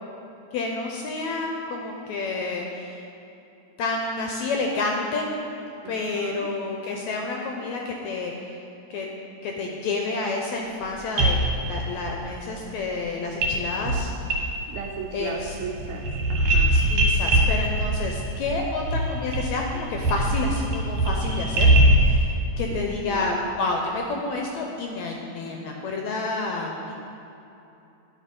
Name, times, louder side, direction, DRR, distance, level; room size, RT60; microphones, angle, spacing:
voice 1, 0.5-3.0 3.8-5.3 5.8-8.6 8.9-9.1 9.4-14.1 15.1-15.5 16.7-26.9, left 3 dB, 80° left, 1 dB, 1.7 m, -29 dB
voice 2, 5.8-6.5 14.7-16.8 22.7-23.6, right 6 dB, 75° right, 1 dB, 1.8 m, -37 dB
sound 1, 10.8-10.9 11.2-12.1 13.4-13.6 13.8-14.9 15.2-22.2, right 1 dB, 60° right, 1.9 m, -22 dB
9.8 x 5.5 x 5.2 m, 2.9 s
omnidirectional pair, 3.8 m